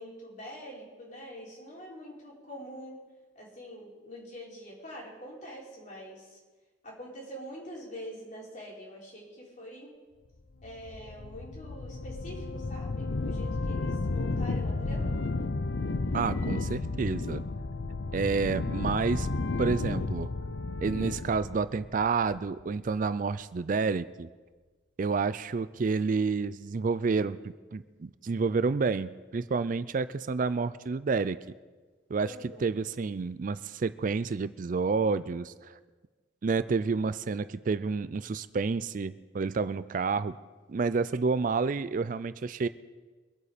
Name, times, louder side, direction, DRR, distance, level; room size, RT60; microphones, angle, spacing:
voice 1, 0.0-3.0 3.3-6.4 6.8-9.9 10.6-15.2 32.2-32.6, equal, 45° left, -4 dB, 4.8 m, -45 dB
sound 1, 10.6-22.7, left 3 dB, 75° left, 0.7 m, -32 dB
voice 2, 16.1-17.4 18.1-19.3 19.6-20.3 20.8-24.3 25.0-31.4 32.1-32.4 32.6-35.8 36.4-40.4 40.7-42.7, right 4 dB, 45° right, 15 dB, 0.4 m, -29 dB
24.0 x 8.4 x 5.1 m, 1.3 s
head